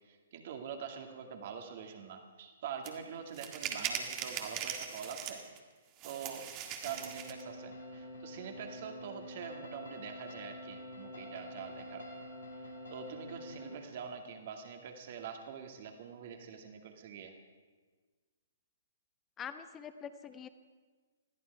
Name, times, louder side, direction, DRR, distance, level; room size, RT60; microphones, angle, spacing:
voice 1, 0.1-5.4 6.0-6.5 6.8-12.1 12.6-12.7 12.9-17.3, right 7 dB, 50° right, 4 dB, 2.3 m, -45 dB
sound 1, 2.8-2.9 3.3-5.6 6.0-7.4, right 8 dB, 30° right, 1.7 m, -40 dB
sound 2, 6.8-13.7, left 1 dB, 70° left, 4.0 m, -47 dB
voice 2, 19.4-20.5, left 8 dB, 20° left, 11 dB, 1.0 m, -44 dB
21.0 x 14.0 x 4.8 m, 1.4 s
figure-of-eight pair, 120°, 0 cm